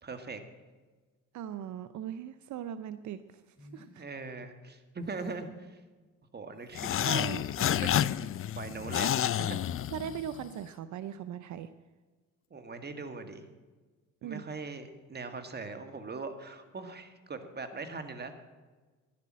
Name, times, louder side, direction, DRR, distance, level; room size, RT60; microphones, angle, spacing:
voice 1, 0.0-0.4 4.0-5.7 6.3-9.6 12.5-13.4 14.2-18.4, right 4 dB, 35° right, 8 dB, 1.8 m, -41 dB
voice 2, 1.3-4.0 7.0-7.4 7.7-7.9 9.9-11.7 14.2-14.4, right 9 dB, 70° right, 12 dB, 0.7 m, -39 dB
sound 1, 3.6-3.9 5.0-5.6 6.5-6.9 7.8-8.2, left 1 dB, 30° left, 3.6 m, -56 dB
sound 2, 6.7-10.5, left 11 dB, 45° left, 0.5 m, -30 dB
12.0 x 11.0 x 7.4 m, 1.3 s
cardioid pair, 90°, 30 cm